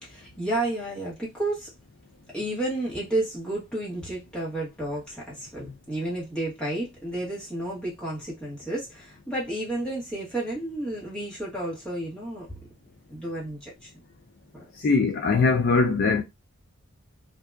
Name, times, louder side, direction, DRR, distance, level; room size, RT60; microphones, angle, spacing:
voice 1, 0.0-1.7 2.3-12.6 13.1-13.9 14.5-14.9, right 1 dB, 5° left, 0.9 m, -31 dB
voice 2, 14.8-16.2, left 4 dB, 45° left, 0.3 m, -21 dB
2.6 x 2.1 x 2.2 m
head